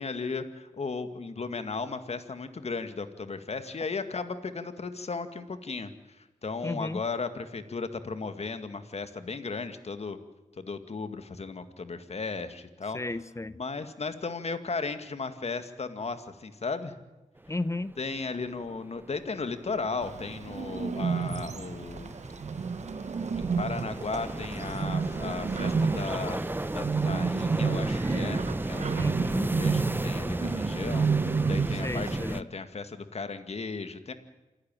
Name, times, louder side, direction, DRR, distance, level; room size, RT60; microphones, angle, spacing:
voice 1, 0.0-10.2 10.6-13.0 13.6-16.9 18.0-22.2 23.4-26.4 26.7-29.1 29.3-34.1, left 4 dB, 55° left, 10 dB, 2.0 m, -35 dB
voice 2, 6.6-7.0 12.9-13.6 17.5-17.9 29.0-29.4 31.8-32.4, left 2 dB, 25° left, 16 dB, 0.8 m, -34 dB
sound 1, 17.9-18.0 18.4-32.4, right 2 dB, 15° right, 0.8 m, -33 dB
Bird, 20.0-32.2, right 5 dB, 60° right, 1.2 m, -31 dB
27.5 x 11.5 x 9.1 m, 1.1 s
cardioid pair, 45°, 13 cm